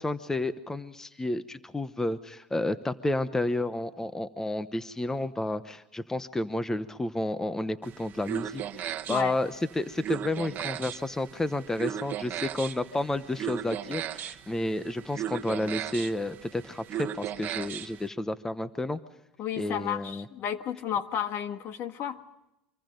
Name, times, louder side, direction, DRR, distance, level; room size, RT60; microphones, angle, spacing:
voice 1, 0.0-19.0 19.6-20.2, left 1 dB, 10° left, 13 dB, 0.9 m, -31 dB
sound 1, 7.8-18.1, right 10 dB, 45° right, 1.2 m, -37 dB
voice 2, 19.4-22.2, left 9 dB, 50° left, 9 dB, 1.6 m, -32 dB
26.0 x 23.0 x 5.3 m, 0.91 s
supercardioid pair, 105°, 5 cm